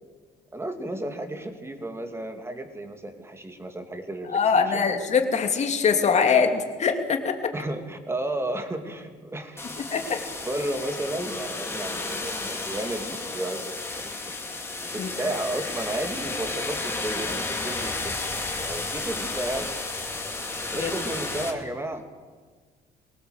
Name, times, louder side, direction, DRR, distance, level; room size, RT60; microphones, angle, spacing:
voice 1, 0.5-4.9 7.5-9.7 10.0-14.3 14.9-18.2 18.6-19.8 20.7-22.0, right 1 dB, 15° right, 6 dB, 2.7 m, -33 dB
voice 2, 4.3-7.5 9.8-10.1 15.0-15.1 20.7-20.9, left 6 dB, 40° left, 5 dB, 2.8 m, -23 dB
sound 1, 9.6-21.5, left 3 dB, 15° left, 3.0 m, -32 dB
23.0 x 18.0 x 8.0 m, 1.5 s
cardioid pair, 110°, 17 cm